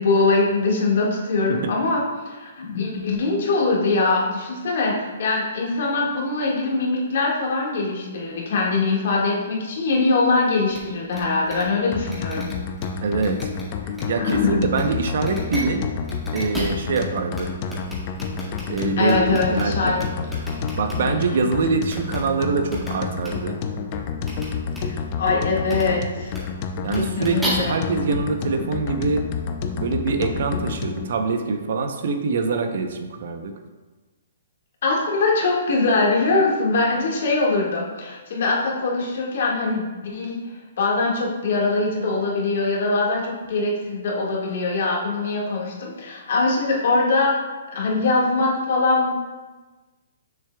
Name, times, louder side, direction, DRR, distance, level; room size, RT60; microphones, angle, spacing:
voice 1, 0.0-12.5 14.1-14.7 19.0-20.4 21.0-21.5 24.8-26.3 26.9-27.8 34.8-40.4 40.8-47.4 47.7-49.1, left 3 dB, 60° left, -2 dB, 1.7 m, -22 dB
sound 1, 10.7-10.8 11.1-11.2 11.5-11.6 12.1-12.8 13.2-13.6 13.9-14.3 14.7-14.8 15.2-15.6 16.0-17.0 17.3-17.4 17.7-19.6 19.9-20.9 21.9-22.2 22.7-22.9 23.2-23.3 24.2-24.4 24.7-24.8 25.6-25.8 26.2-26.4 26.8-27.5, equal, ahead, 1.7 m, -34 dB
sound 2, 11.9-31.1, left 5 dB, 35° left, 0.5 m, -29 dB
voice 2, 13.0-13.4 14.1-15.8 16.3-17.5 18.7-19.9 20.8-23.6 26.8-29.3 29.8-33.5, right 4 dB, 65° right, 7 dB, 0.7 m, -24 dB
6.9 x 6.6 x 2.3 m, 1.3 s
hypercardioid pair, 150°, 0 cm